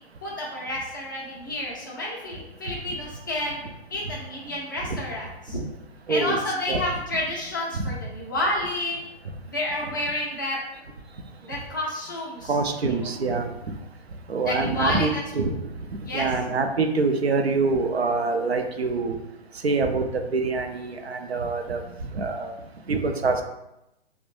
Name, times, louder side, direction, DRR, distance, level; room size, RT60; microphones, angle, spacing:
voice 1, 0.2-3.6 3.9-5.6 6.1-9.0 9.5-10.6 11.5-12.5 13.0-13.1 14.4-15.2 16.0-16.3, left 1 dB, 20° left, -4 dB, 0.4 m, -30 dB
voice 2, 6.1-6.4 6.7-6.9 7.8-7.9 12.5-13.5 14.3-15.1 15.3-15.6 16.1-19.2 19.6-21.8 22.1-22.5 22.9-23.4, right 4 dB, 75° right, 5 dB, 0.5 m, -25 dB
3.3 x 2.2 x 3.0 m, 0.89 s
figure-of-eight pair, 125°, 32 cm